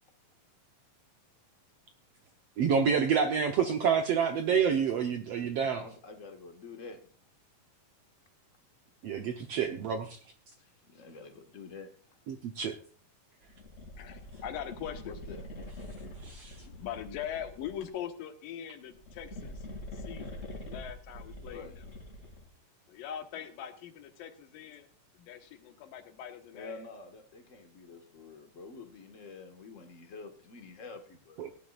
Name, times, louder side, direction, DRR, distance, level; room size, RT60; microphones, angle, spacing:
voice 1, 2.6-5.8 9.0-10.2 12.3-12.8 16.2-16.6 31.4-31.5, right 7 dB, 75° right, 6 dB, 1.5 m, -28 dB
voice 2, 5.6-7.1 10.6-11.9 15.0-15.4 21.5-21.7 26.5-31.6, left 4 dB, 40° left, 5 dB, 1.0 m, -48 dB
sound 1, 13.5-17.9 18.9-22.5, left 1 dB, 25° left, 2.4 m, -45 dB
voice 3, 14.0-15.1 16.4-19.7 19.9-21.7 22.9-24.9 25.2-26.9, left 9 dB, 80° left, 7 dB, 3.1 m, -42 dB
17.5 x 11.0 x 2.4 m, 0.43 s
omnidirectional pair, 4.0 m